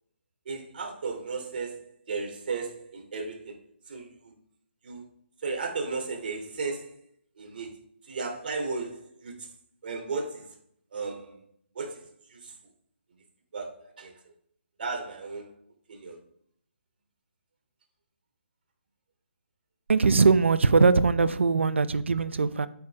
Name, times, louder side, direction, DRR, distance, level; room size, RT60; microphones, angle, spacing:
voice 1, 0.4-3.6 3.9-4.0 4.8-5.1 5.4-7.0 7.4-7.8 8.1-9.5 9.8-10.5 10.9-11.4 11.7-12.5 13.5-14.1 14.8-15.5 15.9-16.2, right 4 dB, 55° right, 3.3 m, -35 dB
voice 2, 19.9-22.7, right 4 dB, 80° right, 0.9 m, -21 dB
9.6 x 9.2 x 3.7 m
hypercardioid pair, 160°, 6 cm